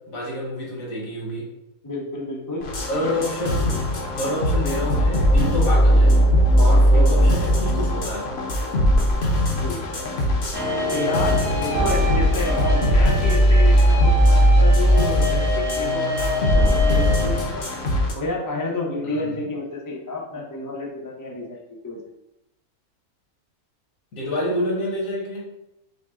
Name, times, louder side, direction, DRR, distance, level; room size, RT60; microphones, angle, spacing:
voice 1, 0.1-1.5 2.8-3.8 4.1-6.2 6.6-8.3 19.0-19.5 24.1-25.4, left 1 dB, 70° left, -3 dB, 1.7 m, -28 dB
voice 2, 1.8-2.7 6.9-7.4 9.6-10.1 10.9-17.7 18.1-22.0, left 3 dB, 25° left, -2 dB, 0.5 m, -30 dB
sound 1, 2.6-18.1, equal, 50° left, 0.9 m, -19 dB
sound 2, 10.5-17.4, left 2 dB, 80° right, 2.2 m, -24 dB
5.9 x 2.2 x 3.6 m, 0.90 s
omnidirectional pair, 1.5 m